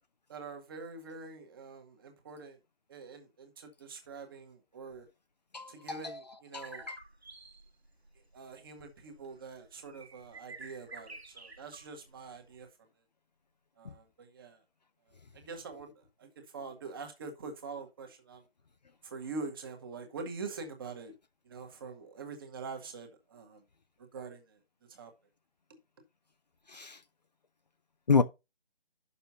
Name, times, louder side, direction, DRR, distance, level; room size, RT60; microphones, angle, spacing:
voice 1, 0.3-2.6 2.9-5.1 5.7-6.9 8.3-12.7 13.8-14.6 15.3-18.4 19.0-21.1 21.5-23.6 24.0-24.6 24.9-25.1, right 4 dB, 20° right, 1.7 m, -44 dB
voice 2, 5.5-6.2 6.5-7.0 26.7-27.0 28.1-28.2, left 5 dB, 45° left, 0.8 m, -29 dB
sound 1, 6.6-12.6, right 3 dB, 85° right, 1.9 m, -51 dB
10.5 x 6.9 x 2.8 m
figure-of-eight pair, 160°, 31 cm